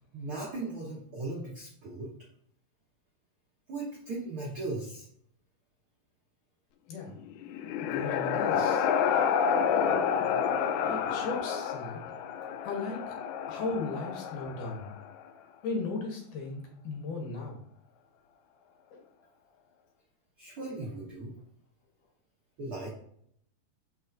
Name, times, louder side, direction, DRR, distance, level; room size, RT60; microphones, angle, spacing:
voice 1, 0.1-2.1 3.7-5.1 20.4-21.3 22.6-22.9, right 2 dB, 80° right, -4 dB, 1.2 m, -37 dB
sound 1, 7.2-15.1, left 7 dB, 85° left, 2.6 m, -29 dB
voice 2, 7.8-8.9 10.8-12.0 12.6-13.1 13.5-14.9 15.6-17.6 18.9-19.0, left 3 dB, 65° left, 0 dB, 2.4 m, -36 dB
6.5 x 6.3 x 2.6 m, 0.68 s
omnidirectional pair, 4.5 m